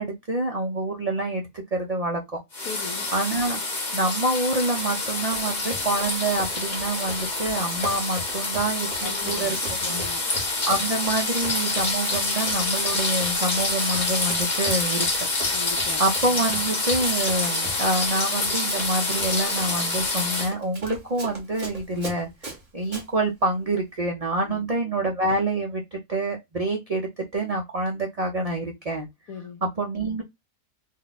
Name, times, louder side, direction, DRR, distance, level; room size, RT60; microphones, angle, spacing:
voice 1, 0.0-2.4 3.1-3.6 3.9-9.6 9.8-10.0 10.6-15.1 16.0-29.1 29.6-30.2, right 2 dB, 70° right, 0.3 m, -27 dB
sound 1, 2.5-20.5, left 2 dB, 35° left, 0.9 m, -27 dB
voice 2, 2.6-3.1 9.0-10.2 15.5-16.0 24.4-24.7 29.3-29.6, left 6 dB, 80° left, 1.1 m, -38 dB
Run, 5.1-23.1, right 2 dB, 30° right, 1.1 m, -40 dB
2.7 x 2.2 x 3.9 m
omnidirectional pair, 1.5 m